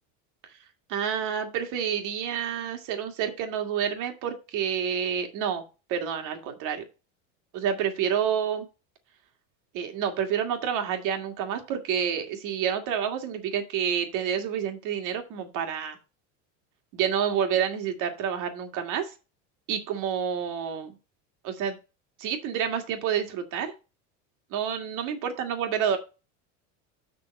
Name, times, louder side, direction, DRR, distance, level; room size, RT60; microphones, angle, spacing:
voice 1, 0.9-5.6 5.9-6.8 7.5-8.7 9.7-16.0 16.9-19.1 19.7-20.9 21.4-21.8 22.2-23.7 24.5-26.0, right 8 dB, 55° right, 5 dB, 2.3 m, -28 dB
6.9 x 6.1 x 5.3 m, 0.30 s
supercardioid pair, 140°, 38 cm